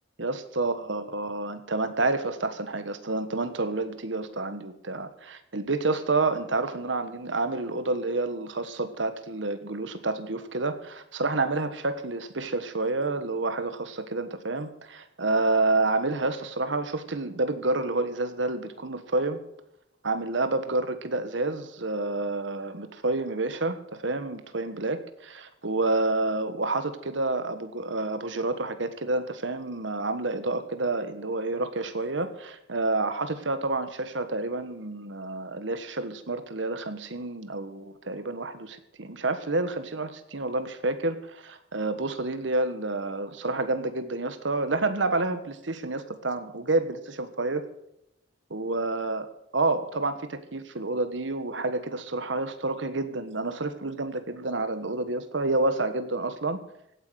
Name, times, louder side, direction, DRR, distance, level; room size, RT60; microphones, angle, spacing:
voice 1, 0.2-19.4 20.0-47.6 48.5-49.3 49.5-56.6, right 2 dB, 70° right, 10 dB, 1.4 m, -29 dB
16.5 x 9.3 x 6.4 m, 0.81 s
head